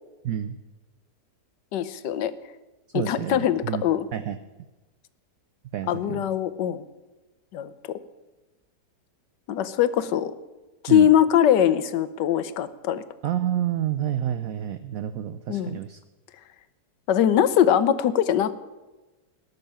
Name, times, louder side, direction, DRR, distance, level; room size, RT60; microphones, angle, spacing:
voice 1, 0.2-0.6 2.9-3.8 4.1-4.4 5.7-6.3 10.9-11.1 13.2-16.0, right 10 dB, 65° right, 11 dB, 0.9 m, -29 dB
voice 2, 1.7-2.3 2.9-4.1 5.9-6.8 7.5-8.0 9.5-10.3 10.8-13.0 15.5-15.8 17.1-18.5, left 10 dB, 80° left, 14 dB, 1.4 m, -22 dB
18.0 x 6.8 x 8.8 m, 1.1 s
omnidirectional pair, 1.9 m